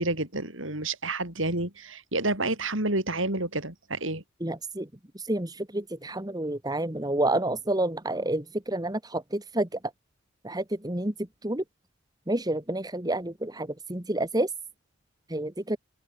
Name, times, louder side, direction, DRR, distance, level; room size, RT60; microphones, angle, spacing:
voice 1, 0.0-4.2, right 2 dB, 65° right, 6.9 m, -29 dB
voice 2, 4.4-4.9 5.3-9.7 10.4-11.1 11.4-11.6 12.3-14.5 15.3-15.8, right 1 dB, 20° right, 1.9 m, -29 dB
head